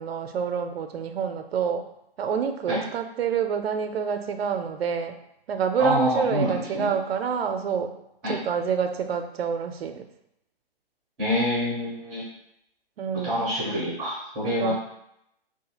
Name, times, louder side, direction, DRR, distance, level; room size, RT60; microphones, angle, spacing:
voice 1, 0.0-1.8 2.2-5.1 5.5-7.9 8.3-10.1 13.0-13.4 14.4-14.7, right 6 dB, 80° right, 7 dB, 0.5 m, -27 dB
voice 2, 5.8-6.9 8.2-8.4 11.2-12.2 13.1-14.7, left 1 dB, 5° right, -10 dB, 0.4 m, -26 dB
2.6 x 2.4 x 2.8 m, 0.79 s
hypercardioid pair, 160°, 30 cm